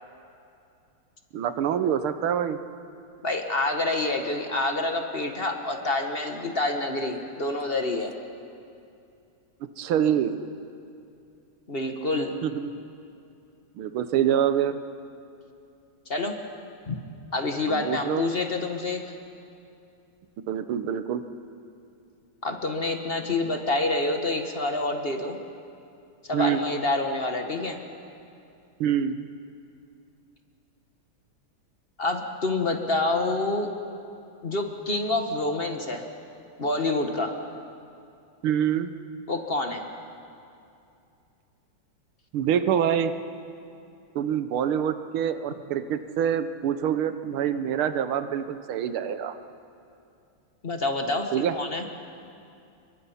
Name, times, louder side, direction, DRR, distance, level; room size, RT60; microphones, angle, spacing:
voice 1, 1.3-2.6 9.8-10.3 12.4-12.7 13.8-14.8 17.7-18.2 20.5-21.2 26.3-26.6 28.8-29.2 38.4-38.9 42.3-43.2 44.2-49.4 51.3-51.5, right 9 dB, 85° right, 10 dB, 1.7 m, -25 dB
voice 2, 3.2-8.1 11.7-12.3 16.1-16.4 16.9-17.0 17.3-19.0 22.4-25.4 26.3-27.8 32.0-33.7 34.4-36.1 36.6-37.4 39.3-39.8 50.6-51.9, left 2 dB, 30° left, 4 dB, 1.4 m, -27 dB
29.0 x 23.0 x 5.7 m, 2.6 s
omnidirectional pair, 2.3 m